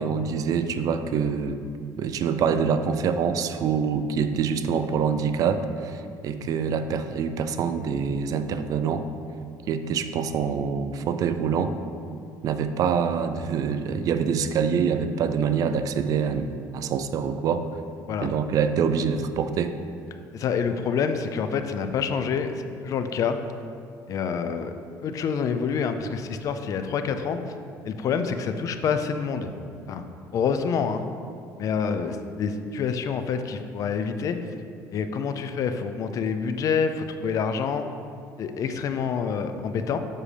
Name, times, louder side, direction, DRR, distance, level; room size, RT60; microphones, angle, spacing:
voice 1, 0.0-1.6 2.0-9.0 9.7-11.7 12.4-17.6 18.2-19.8, right 6 dB, 55° right, 10 dB, 0.4 m, -25 dB
voice 2, 20.3-23.4 24.1-24.7 25.0-27.4 27.8-29.5 29.9-30.0 30.3-31.0 31.6-34.4 34.9-37.9 38.4-40.0, left 6 dB, 50° left, 8 dB, 0.5 m, -27 dB
7.5 x 6.3 x 3.3 m, 2.4 s
cardioid pair, 120°, 7 cm